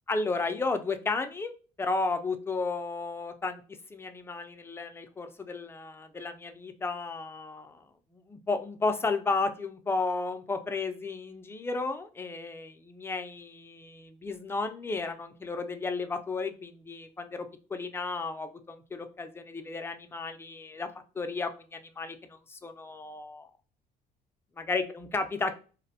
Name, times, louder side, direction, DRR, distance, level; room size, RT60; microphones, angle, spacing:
voice 1, 0.1-1.5 1.8-3.6 3.9-7.8 8.1-20.9 21.2-23.5 24.7-25.5, left 3 dB, 15° left, 7 dB, 0.3 m, -33 dB
2.5 x 2.1 x 2.7 m, 0.36 s
cardioid pair, 110°, 17 cm